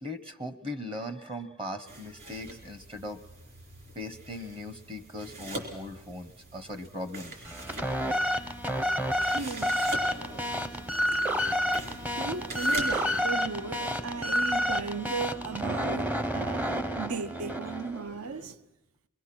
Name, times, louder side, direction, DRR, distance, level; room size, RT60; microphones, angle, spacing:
voice 1, 0.0-3.2 3.9-7.5 11.5-11.7, left 1 dB, 25° right, 1.0 m, -39 dB
sound 1, 1.9-13.2, right 1 dB, 45° right, 4.3 m, -43 dB
sound 2, 7.4-18.0, equal, 5° right, 0.7 m, -30 dB
voice 2, 9.3-9.8 12.2-18.5, right 5 dB, 70° right, 0.7 m, -36 dB
sound 3, 9.9-18.6, right 1 dB, 85° right, 2.3 m, -48 dB
23.5 x 22.0 x 6.1 m
head